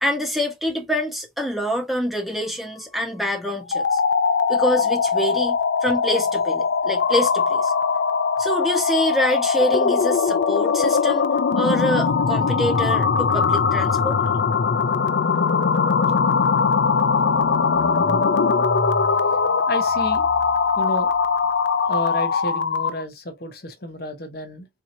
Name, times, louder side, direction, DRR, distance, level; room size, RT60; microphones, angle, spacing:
voice 1, 0.0-4.0 4.5-5.6 5.8-7.7 8.4-11.2 11.5-14.2, equal, ahead, 1.1 m, -25 dB
sound 1, 3.6-23.0, left 5 dB, 90° left, 0.5 m, -20 dB
Car / Engine starting, 16.1-16.2 16.5-21.7, right 1 dB, 40° right, 0.7 m, -37 dB
voice 2, 19.7-20.3 20.8-21.1 21.9-24.7, equal, 60° left, 0.9 m, -31 dB
4.5 x 2.9 x 2.6 m
head